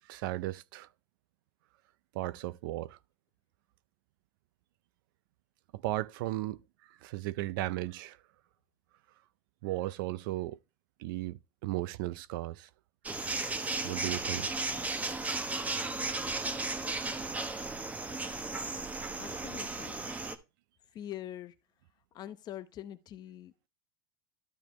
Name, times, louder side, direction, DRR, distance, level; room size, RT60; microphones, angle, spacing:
voice 1, 0.0-0.9 2.1-3.0 5.7-8.2 9.6-10.6 11.0-12.7 13.1-13.2 13.8-14.6, right 16 dB, 70° right, 0.5 m, -36 dB
sound 1, 13.1-20.4, right 3 dB, 10° right, 0.9 m, -35 dB
voice 2, 19.1-20.1 20.9-21.5 22.1-23.5, left 12 dB, 35° left, 0.9 m, -44 dB
12.5 x 5.0 x 3.1 m
supercardioid pair, 130°, 12 cm